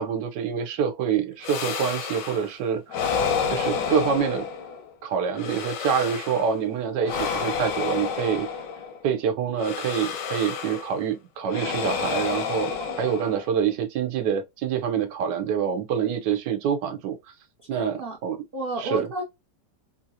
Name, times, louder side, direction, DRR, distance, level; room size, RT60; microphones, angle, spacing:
voice 1, 0.0-3.0 3.5-4.5 5.0-8.5 9.0-12.7 13.0-17.2 17.7-18.4 18.8-19.1, right 7 dB, 85° right, 1.3 m, -26 dB
sound 1, 1.4-2.5 2.9-4.9 5.3-6.6 7.0-9.0 9.6-11.0 11.5-13.6, left 6 dB, 85° left, 1.4 m, -30 dB
voice 2, 17.7-18.2 18.5-19.2, right 2 dB, 60° right, 0.5 m, -31 dB
3.7 x 2.5 x 2.7 m
omnidirectional pair, 1.8 m